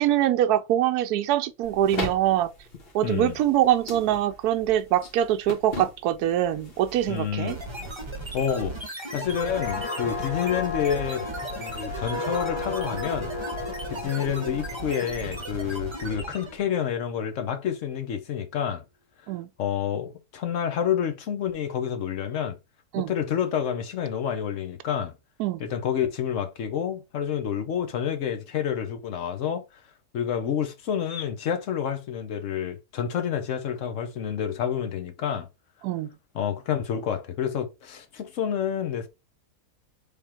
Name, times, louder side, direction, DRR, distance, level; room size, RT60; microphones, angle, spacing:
voice 1, 0.0-2.5 2.9-7.6 19.3-19.5 22.9-23.1 25.4-25.6 35.8-36.1, right 12 dB, 80° right, 1.1 m, -23 dB
sound 1, 1.6-8.1, left 2 dB, 40° left, 1.3 m, -39 dB
voice 2, 3.0-3.4 7.1-7.5 8.3-8.8 9.1-11.3 11.6-13.3 13.9-18.8 19.6-22.6 23.0-25.1 25.6-29.6 30.1-35.5 36.3-39.1, left 8 dB, 60° left, 1.1 m, -28 dB
sound 2, 7.5-16.6, right 2 dB, 20° right, 1.1 m, -36 dB
sound 3, 9.3-16.7 17.1-17.4, left 5 dB, 90° left, 2.0 m, -35 dB
3.5 x 3.4 x 4.3 m
omnidirectional pair, 1.6 m